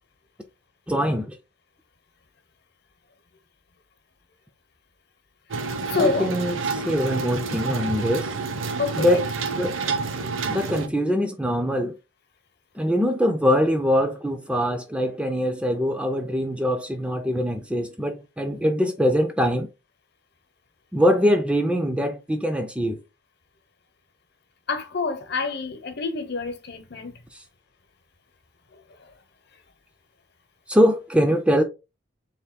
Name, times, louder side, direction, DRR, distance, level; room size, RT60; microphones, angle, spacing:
voice 1, 0.9-1.4 6.0-8.3 9.0-9.2 9.6-9.8 10.5-12.0 12.8-19.7 20.9-23.0 27.3-27.4 30.7-31.6, equal, 5° right, 0.4 m, -23 dB
sound 1, 5.5-10.9, right 4 dB, 80° right, 0.7 m, -29 dB
voice 2, 5.9-6.3 8.8-9.2 24.7-27.1, left 4 dB, 55° left, 0.9 m, -27 dB
6.8 x 3.5 x 2.2 m
head